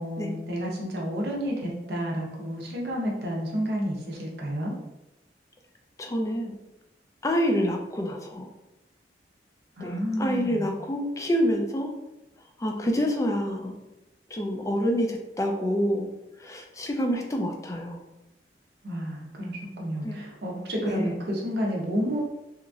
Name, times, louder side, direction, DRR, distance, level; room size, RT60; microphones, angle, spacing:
voice 1, 0.0-4.7 9.8-10.7 18.8-22.2, equal, 60° right, -2 dB, 0.6 m, -30 dB
voice 2, 6.0-6.5 7.2-8.5 9.8-9.9 10.2-11.9 12.6-13.7 14.3-16.1 16.4-18.0 20.0-20.2 20.8-21.0, equal, 15° left, 2 dB, 0.3 m, -27 dB
2.9 x 2.5 x 2.3 m, 0.93 s
head